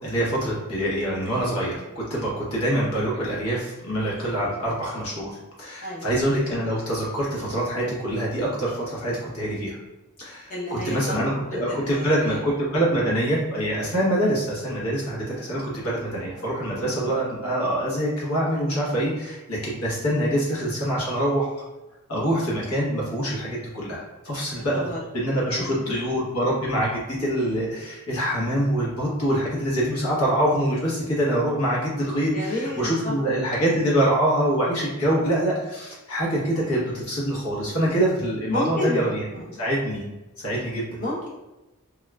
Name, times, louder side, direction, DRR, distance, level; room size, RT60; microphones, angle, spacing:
voice 1, 0.0-5.3 5.6-9.8 10.2-21.5 22.1-24.8 25.1-39.2 39.6-40.0 40.4-41.0, right 1 dB, 75° left, -5 dB, 1.1 m, -25 dB
voice 2, 10.5-11.1 11.5-12.4 15.4-15.6 24.5-25.0 25.5-25.9 32.3-33.3 38.5-39.0 39.3-39.5 41.0-41.3, left 1 dB, 35° left, -4 dB, 0.8 m, -30 dB
3.5 x 2.4 x 2.2 m, 1.0 s
head